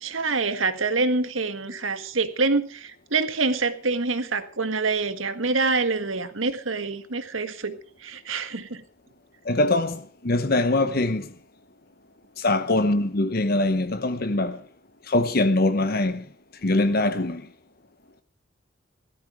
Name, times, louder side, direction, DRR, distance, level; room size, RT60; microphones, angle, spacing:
voice 1, 0.0-8.8, right 3 dB, 80° right, 1.7 m, -26 dB
voice 2, 9.4-11.3 12.4-14.6 15.0-16.3 16.6-17.5, left 2 dB, 50° left, 0.9 m, -23 dB
17.0 x 13.5 x 4.9 m
head